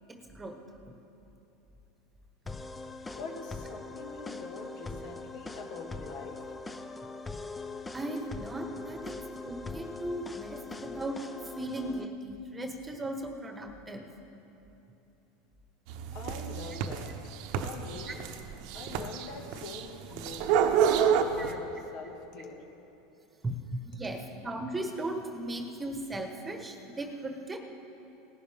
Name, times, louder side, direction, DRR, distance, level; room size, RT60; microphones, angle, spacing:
voice 1, 0.1-0.6 7.9-9.2 9.4-11.2 11.6-14.1 18.1-18.2 21.4-21.5 23.4-27.6, right 1 dB, 15° right, 4 dB, 1.3 m, -37 dB
sound 1, 2.5-12.1, left 3 dB, 15° left, 0.7 m, -42 dB
voice 2, 3.1-6.5 16.1-17.1 17.6-18.2 18.7-20.6 20.9-22.6, left 4 dB, 60° left, 2 dB, 1.9 m, -44 dB
sound 2, 15.9-21.5, right 8 dB, 65° right, 0.9 m, -28 dB
19.0 x 11.0 x 3.6 m, 2.9 s
supercardioid pair, 105°, 0 cm